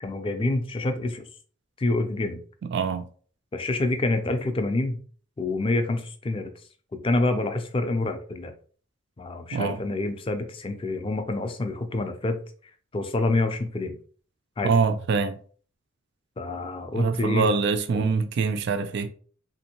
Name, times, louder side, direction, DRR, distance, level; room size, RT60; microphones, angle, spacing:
voice 1, 0.0-1.2 1.8-2.4 3.5-5.0 5.4-6.5 7.0-8.5 9.2-12.4 12.9-13.9 14.6-14.7 16.4-17.5 17.9-18.1, left 2 dB, 25° left, 0.4 m, -27 dB
voice 2, 2.7-3.0 9.5-9.8 14.6-15.4 16.9-19.1, right 5 dB, 55° right, 0.3 m, -24 dB
3.4 x 2.6 x 2.8 m
head